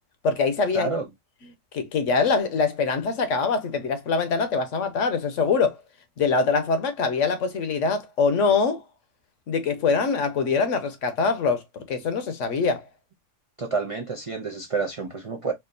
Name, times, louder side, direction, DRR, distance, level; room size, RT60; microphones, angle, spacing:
voice 1, 0.2-0.9 1.7-5.8 6.2-8.8 9.5-12.8, left 4 dB, 65° left, 1.1 m, -23 dB
voice 2, 0.7-1.1 13.6-15.5, right 4 dB, 55° right, 0.3 m, -29 dB
4.3 x 2.4 x 2.5 m
omnidirectional pair, 1.4 m